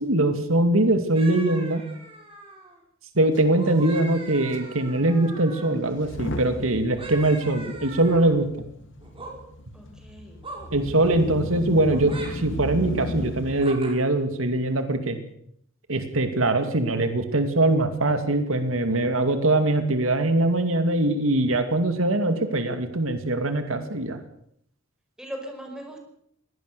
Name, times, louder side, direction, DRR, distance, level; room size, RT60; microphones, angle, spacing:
voice 1, 0.0-1.8 3.1-8.5 10.7-15.2 15.9-24.2, right 2 dB, 90° right, 8 dB, 2.5 m, -22 dB
sound 1, 1.1-2.8 3.4-5.8 6.9-8.4 9.0-9.3 10.4-10.7 11.9-12.3 13.6-13.9, right 3 dB, 30° right, 5.5 m, -41 dB
Motor vehicle (road) / Engine starting / Accelerating revving vroom, 3.4-3.5 3.7-3.9 4.5-4.6 5.9-13.7, left 1 dB, 65° left, 2.7 m, -36 dB
voice 2, 9.7-10.4 25.2-26.0, equal, 5° right, 3 dB, 5.3 m, -39 dB
21.5 x 18.0 x 6.8 m, 0.68 s
head